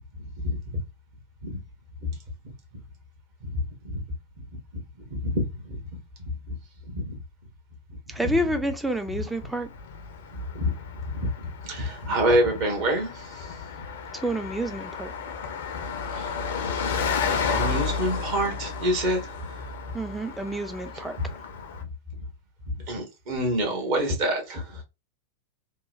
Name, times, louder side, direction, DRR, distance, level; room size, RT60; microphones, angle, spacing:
voice 1, 0.4-0.8 1.5-1.6 2.0-2.1 3.5-4.0 5.1-5.8 6.5-6.6 6.9-7.2 8.2-8.3 10.3-13.5 16.1-16.3 16.9-17.0 17.5-19.2 21.2-21.3 22.9-24.8, equal, 45° right, 1.1 m, -27 dB
voice 2, 8.1-9.7 14.1-15.1 19.9-21.2, right 1 dB, 5° right, 0.4 m, -29 dB
Car passing by, 8.6-21.8, left 5 dB, 55° left, 0.5 m, -33 dB
3.0 x 2.2 x 2.3 m
figure-of-eight pair, 90°, 0 cm